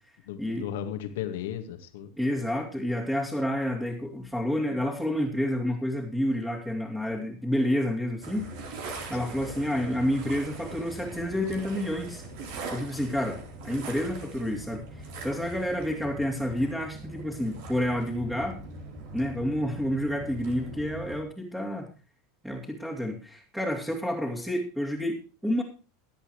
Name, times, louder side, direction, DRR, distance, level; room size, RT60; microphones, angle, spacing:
voice 1, 0.3-2.1 9.2-9.3, left 10 dB, 70° left, 6 dB, 1.9 m, -35 dB
voice 2, 2.2-8.5 9.1-12.2 12.7-18.6 19.1-21.9 22.4-25.6, equal, 5° right, -1 dB, 3.0 m, -29 dB
sound 1, 8.2-21.2, right 2 dB, 65° right, 3.7 m, -41 dB
23.0 x 8.2 x 3.2 m, 0.34 s
hypercardioid pair, 85°, 0 cm